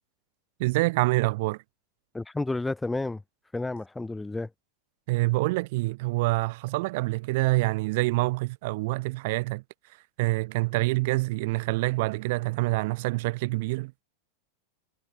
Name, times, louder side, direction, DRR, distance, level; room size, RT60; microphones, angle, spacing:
voice 1, 0.6-1.6 5.1-9.6 10.2-13.9, right 22 dB, 50° right, 2.4 m, -26 dB
voice 2, 2.1-3.2 3.5-4.5, left 2 dB, 5° left, 2.7 m, -31 dB
figure-of-eight pair, 90°, 0 cm